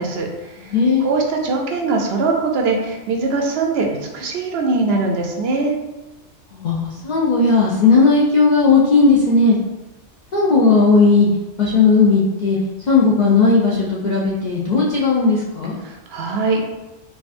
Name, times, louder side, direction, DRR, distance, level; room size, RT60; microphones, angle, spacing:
voice 1, 0.0-0.7 1.0-5.8 15.8-16.7, right 3 dB, 65° right, 1 dB, 0.7 m, -21 dB
voice 2, 0.6-1.0 6.5-9.6 10.3-11.3 11.6-12.6 12.9-15.8, left 4 dB, 50° left, -7 dB, 0.5 m, -15 dB
4.7 x 2.3 x 2.5 m, 1.0 s
omnidirectional pair, 1.3 m